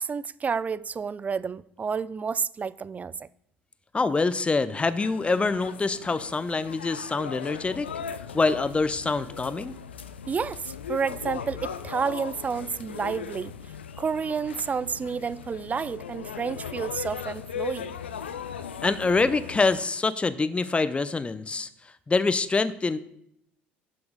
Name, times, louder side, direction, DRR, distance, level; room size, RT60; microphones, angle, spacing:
voice 1, 0.0-3.3 10.3-13.5 14.0-17.9, right 6 dB, 25° right, 0.3 m, -30 dB
voice 2, 3.9-7.9 8.3-9.7 18.8-21.7 22.1-23.0, left 3 dB, 20° left, 0.6 m, -25 dB
sound 1, 5.0-19.8, left 7 dB, 80° left, 0.4 m, -38 dB
11.0 x 6.1 x 3.7 m
figure-of-eight pair, 60°, 6 cm